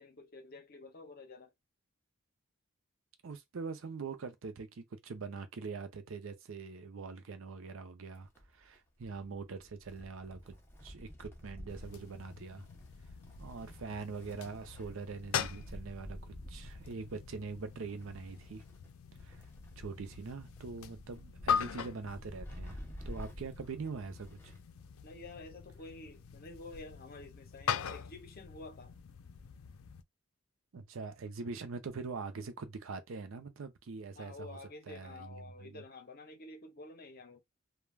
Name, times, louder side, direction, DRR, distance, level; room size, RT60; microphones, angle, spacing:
voice 1, 0.0-1.5 25.0-29.0 34.2-37.4, left 2 dB, 45° left, 0.7 m, -50 dB
voice 2, 3.2-10.6 10.8-12.7 13.4-18.7 19.2-19.4 19.8-24.6 30.7-34.6 34.8-35.8, right 4 dB, 70° right, 0.5 m, -43 dB
Wind, 8.1-24.7 25.0-25.1 26.1-26.2, equal, 10° left, 0.7 m, -50 dB
sound 1, 11.7-30.0, left 7 dB, 85° left, 0.4 m, -42 dB
3.2 x 2.2 x 2.2 m
head